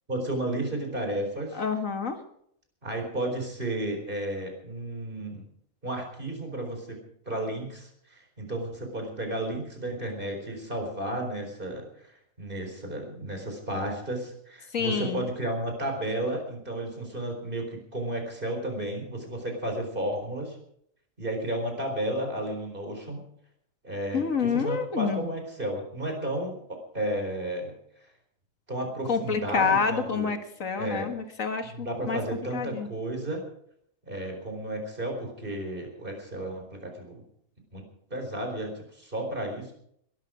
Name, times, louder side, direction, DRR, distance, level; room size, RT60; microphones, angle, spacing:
voice 1, 0.1-1.6 2.8-5.4 5.8-7.0 7.3-11.9 12.4-20.6 21.2-23.3 23.8-27.7 28.7-30.3 30.8-31.1 31.7-33.4 34.1-37.2 37.7-37.8 38.1-39.7, right 1 dB, 40° right, 3 dB, 4.6 m, -33 dB
voice 2, 1.5-2.2 14.7-15.3 24.1-25.2 29.1-32.2 32.5-32.9, left 5 dB, 70° left, 6 dB, 2.0 m, -28 dB
21.5 x 12.5 x 5.0 m, 0.69 s
omnidirectional pair, 1.4 m